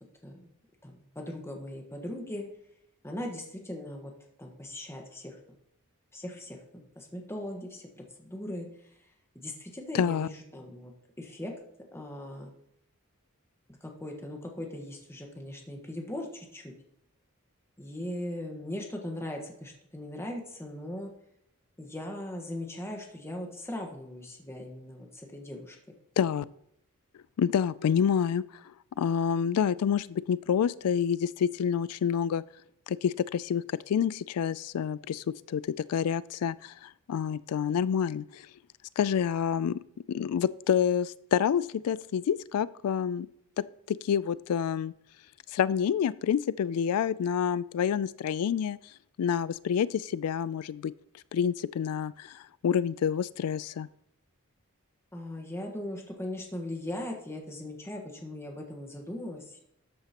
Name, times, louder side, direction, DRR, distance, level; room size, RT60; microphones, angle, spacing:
voice 1, 0.8-2.5 3.0-4.1 4.4-5.4 6.1-10.9 11.2-11.5 11.9-12.5 13.7-16.7 17.8-21.1 21.8-25.8 55.1-59.6, left 1 dB, 10° left, 1 dB, 1.4 m, -39 dB
voice 2, 9.9-10.3 26.2-26.4 27.4-28.4 29.0-32.4 32.9-35.6 35.9-38.5 39.0-39.8 40.1-43.3 43.9-44.9 45.5-48.8 49.2-50.9 51.3-53.9, left 8 dB, 80° left, 19 dB, 0.3 m, -28 dB
12.5 x 8.6 x 3.0 m, 0.75 s
head